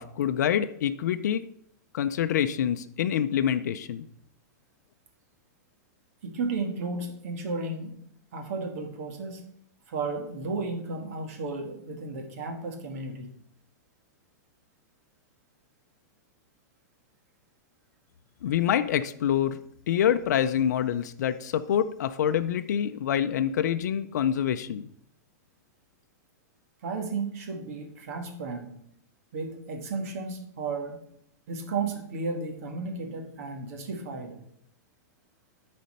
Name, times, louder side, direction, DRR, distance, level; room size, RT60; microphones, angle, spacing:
voice 1, 0.0-1.4 1.9-4.1 18.4-19.6 19.9-24.9, left 9 dB, 75° left, 9 dB, 0.5 m, -26 dB
voice 2, 6.2-8.0 8.3-9.5 9.9-13.3 26.8-28.7 29.3-31.0 31.5-34.4, right 3 dB, 55° right, 4 dB, 1.6 m, -33 dB
10.5 x 4.2 x 5.4 m, 0.72 s
supercardioid pair, 170°, 9 cm